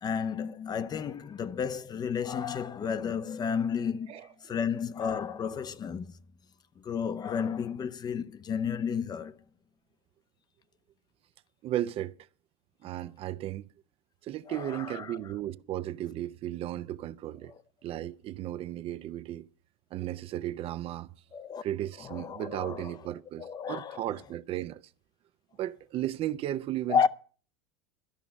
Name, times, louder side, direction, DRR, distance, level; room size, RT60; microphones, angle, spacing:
voice 1, 0.0-6.1 6.8-9.4 14.5-15.2 21.3-21.6 22.0-22.9 23.4-24.0 26.9-27.1, left 7 dB, 30° left, 0.7 m, -32 dB
voice 2, 11.6-12.1 12.8-13.7 14.2-17.5 17.8-19.5 19.9-21.1 21.6-24.8 25.6-27.1, right 13 dB, 45° right, 0.6 m, -35 dB
12.5 x 5.8 x 8.7 m
hypercardioid pair, 95°, 14 cm